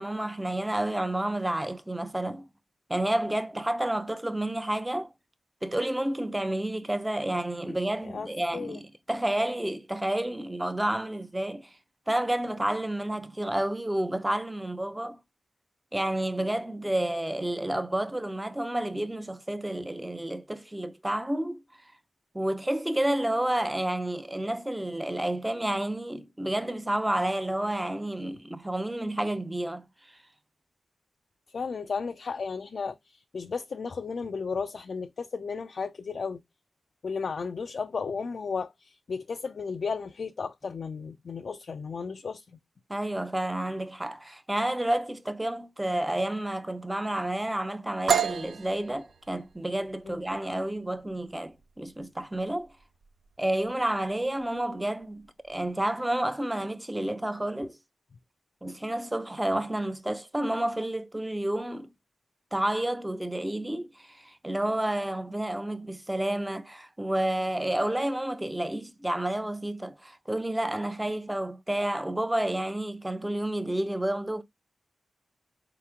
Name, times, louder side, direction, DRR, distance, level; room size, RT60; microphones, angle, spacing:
voice 1, 0.0-2.5 2.9-5.1 5.6-11.7 12.1-15.2 15.9-21.6 22.3-29.8 42.9-52.7 53.4-57.8 58.6-61.9 62.5-74.4, right 1 dB, 15° right, 0.6 m, -30 dB
voice 2, 31.5-36.4 37.0-42.4 50.1-50.2, left 5 dB, 65° left, 0.3 m, -34 dB
sound 1, 48.1-55.7, right 8 dB, 80° right, 0.4 m, -34 dB
4.2 x 2.9 x 3.5 m
cardioid pair, 50°, 0 cm